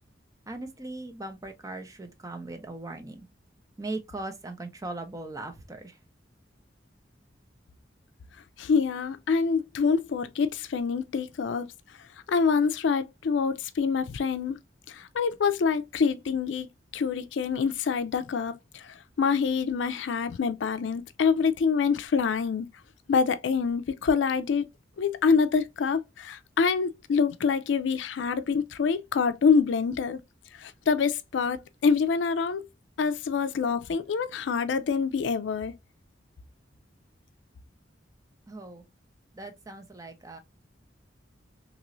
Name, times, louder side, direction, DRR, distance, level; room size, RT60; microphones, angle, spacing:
voice 1, 0.5-3.3 3.8-6.0 38.5-38.8 39.3-40.4, right 2 dB, 20° right, 0.6 m, -39 dB
voice 2, 8.6-11.7 12.3-14.6 14.9-16.7 16.9-22.7 23.1-24.7 25.0-30.2 30.5-32.6 33.0-35.7, left 5 dB, 80° left, 0.4 m, -26 dB
3.0 x 2.9 x 2.5 m
head